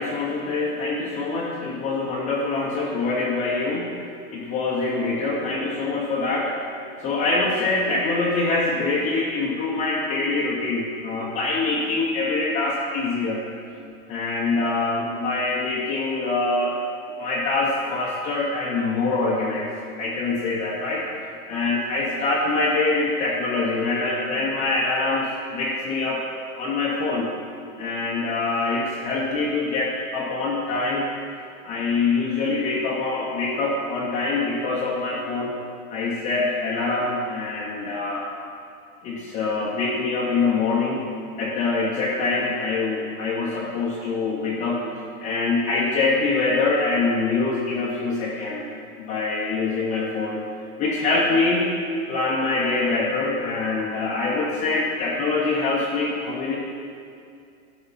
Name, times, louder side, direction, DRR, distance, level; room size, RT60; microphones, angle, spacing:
voice 1, 0.0-4.0 4.3-6.5 7.0-13.5 14.1-16.8 17.2-21.1 21.5-26.3 26.6-27.3 27.8-31.1 31.6-35.5 35.9-38.3 39.0-41.1 41.4-44.8 45.2-48.6 49.0-50.4 50.8-51.7 52.1-56.6, left 3 dB, 15° left, -4 dB, 0.5 m, -24 dB
12.0 x 5.1 x 5.5 m, 2.4 s
supercardioid pair, 150°, 43 cm